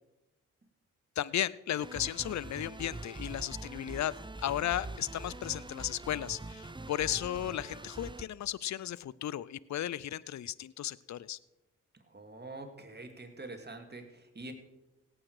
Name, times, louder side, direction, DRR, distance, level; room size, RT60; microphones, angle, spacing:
voice 1, 1.2-11.4, left 12 dB, 55° left, 21 dB, 0.5 m, -35 dB
sound 1, 1.8-8.2, right 2 dB, 15° right, 0.7 m, -44 dB
voice 2, 11.9-14.5, right 2 dB, 30° right, 4 dB, 2.6 m, -45 dB
17.5 x 8.7 x 4.9 m, 0.99 s
supercardioid pair, 40°, 34 cm